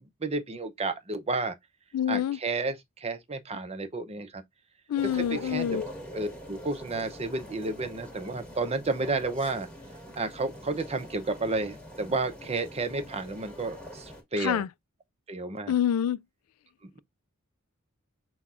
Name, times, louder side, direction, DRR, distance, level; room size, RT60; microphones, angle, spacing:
voice 1, 0.2-1.5 2.1-4.4 5.1-5.8 6.1-9.7 10.2-14.6 15.3-15.8 16.8-17.0, right 3 dB, 30° right, 0.7 m, -31 dB
voice 2, 1.9-2.4 4.9-5.9 14.4-14.7 15.7-16.2, left 9 dB, 75° left, 0.3 m, -26 dB
sound 1, 5.0-14.2, equal, 5° left, 1.5 m, -44 dB
5.8 x 2.3 x 3.6 m
head